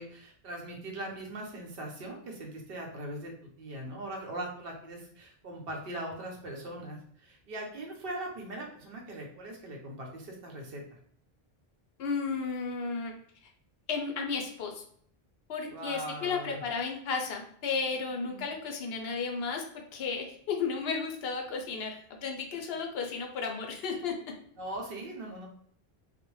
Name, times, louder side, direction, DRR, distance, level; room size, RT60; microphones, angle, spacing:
voice 1, 0.0-3.3 3.6-10.8 15.7-16.6 18.1-18.4 23.8-24.0 24.6-25.5, right 1 dB, 65° right, 0 dB, 0.8 m, -40 dB
voice 2, 12.0-13.1 13.9-14.8 15.5-24.1, left 5 dB, 75° left, 2 dB, 0.8 m, -33 dB
2.4 x 2.1 x 3.0 m, 0.64 s
omnidirectional pair, 1.1 m